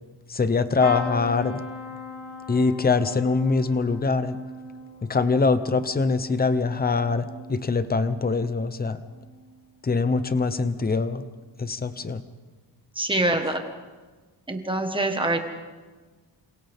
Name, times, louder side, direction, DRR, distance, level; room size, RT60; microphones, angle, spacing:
voice 1, 0.3-1.6 2.5-4.4 5.0-9.0 9.8-11.2 11.6-12.2, left 4 dB, 20° left, 11 dB, 0.8 m, -23 dB
sound 1, 0.8-8.6 9.1-9.6 10.9-11.1 11.3-11.4, left 2 dB, 40° left, 2.7 m, -39 dB
voice 2, 12.9-13.7 14.5-15.4, right 2 dB, 10° right, 5 dB, 1.6 m, -24 dB
28.0 x 27.0 x 3.7 m, 1.3 s
wide cardioid pair, 180°, 44 cm